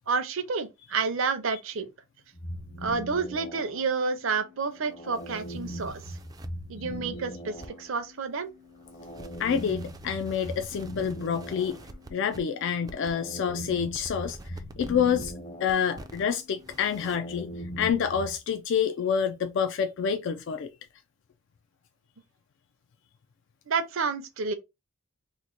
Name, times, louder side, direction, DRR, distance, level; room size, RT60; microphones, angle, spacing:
voice 1, 0.1-1.9 2.8-6.2 6.7-8.5 23.7-24.5, right 4 dB, 65° right, 0.6 m, -30 dB
sound 1, 2.3-18.4, equal, 35° left, 0.7 m, -41 dB
sound 2, 5.1-6.5 7.6-8.0 8.3-12.4 12.9-13.4 13.7-15.3 15.7-16.3 16.6-17.2, right 2 dB, 20° right, 0.3 m, -48 dB
voice 2, 9.4-11.8 12.1-15.3 15.6-20.7, left 7 dB, 60° left, 0.3 m, -28 dB
3.0 x 2.1 x 3.8 m
head